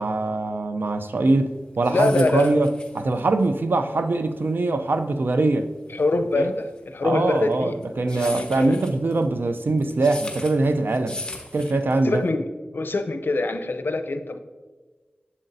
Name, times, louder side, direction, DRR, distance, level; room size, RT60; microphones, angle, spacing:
voice 1, 0.0-2.7 2.9-5.7 6.4-6.5 7.0-11.2 11.5-12.2, right 2 dB, 75° right, 8 dB, 0.5 m, -22 dB
sound 1, 1.5-12.3, left 1 dB, 25° left, 1.2 m, -39 dB
voice 2, 1.9-2.5 5.9-7.8 8.1-8.8 12.0-12.4 12.7-14.4, left 3 dB, 80° left, 8 dB, 0.5 m, -24 dB
7.8 x 7.3 x 2.6 m, 1.3 s
wide cardioid pair, 45°, 4 cm